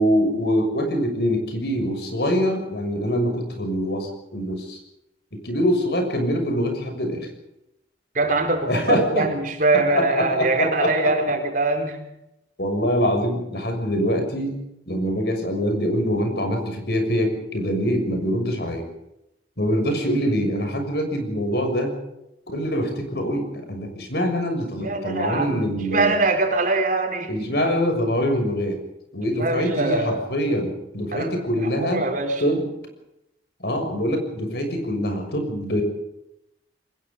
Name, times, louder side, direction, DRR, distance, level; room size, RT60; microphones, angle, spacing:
voice 1, 0.0-4.8 5.3-7.3 8.7-9.3 9.9-11.1 12.6-14.6 14.9-18.9 19.6-21.9 22.5-26.1 27.3-28.8 29.1-32.0 32.4-32.6 33.6-35.8, equal, 60° left, 5 dB, 6.6 m, -24 dB
voice 2, 8.1-12.0 24.8-27.5 29.3-30.2 31.1-32.4, right 2 dB, 50° right, 4 dB, 4.4 m, -23 dB
24.0 x 21.0 x 5.4 m, 0.84 s
head